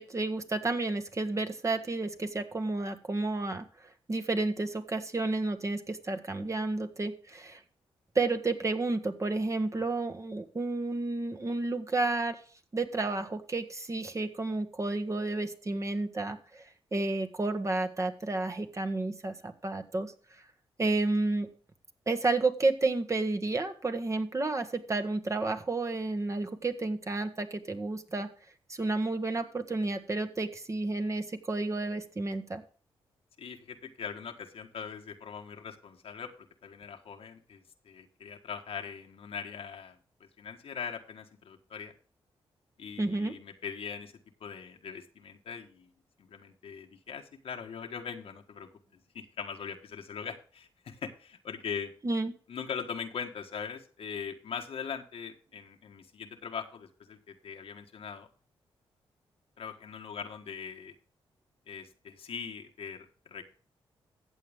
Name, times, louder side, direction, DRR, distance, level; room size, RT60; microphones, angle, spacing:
voice 1, 0.0-3.6 4.1-7.6 8.1-12.4 12.7-16.6 16.9-20.1 20.8-21.5 22.1-28.3 28.7-32.6 43.0-43.3 52.0-52.3, right 2 dB, 30° right, 7 dB, 1.4 m, -31 dB
voice 2, 33.4-36.3 36.6-40.0 40.4-41.9 42.8-44.1 44.4-45.9 46.2-48.7 49.1-51.9 52.5-58.3 59.6-60.9 61.7-63.4, left 6 dB, 70° left, 4 dB, 1.5 m, -41 dB
14.5 x 7.7 x 3.5 m, 0.41 s
cardioid pair, 80°, 10 cm